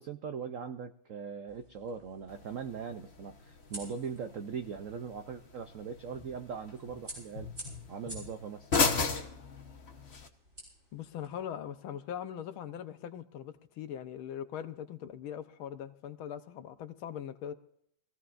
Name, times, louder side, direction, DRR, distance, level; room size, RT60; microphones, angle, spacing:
voice 1, 0.0-7.5 7.9-8.7, right 6 dB, 85° right, 8 dB, 0.7 m, -40 dB
sound 1, 1.5-11.4, right 1 dB, 30° right, 7.7 m, -51 dB
sound 2, 2.3-10.3, left 4 dB, 40° left, 1.2 m, -36 dB
voice 2, 10.9-17.5, left 9 dB, 85° left, 10 dB, 1.7 m, -41 dB
23.5 x 16.0 x 2.5 m, 0.70 s
omnidirectional pair, 2.2 m